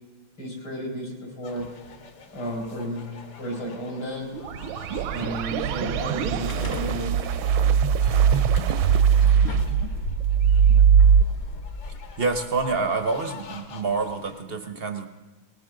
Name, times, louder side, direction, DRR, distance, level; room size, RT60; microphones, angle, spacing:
voice 1, 0.4-1.7 2.3-4.3 5.1-7.2, equal, 75° left, -1 dB, 5.8 m, -33 dB
sound 1, 1.4-14.4, left 4 dB, 55° left, 1.8 m, -41 dB
sound 2, 4.3-11.2, right 7 dB, 80° right, 1.4 m, -20 dB
sound 3, 6.0-11.6, left 3 dB, 40° left, 1.0 m, -42 dB
voice 2, 12.2-15.1, right 4 dB, 55° right, 7 dB, 0.6 m, -27 dB
20.0 x 19.0 x 3.8 m, 1.2 s
omnidirectional pair, 2.3 m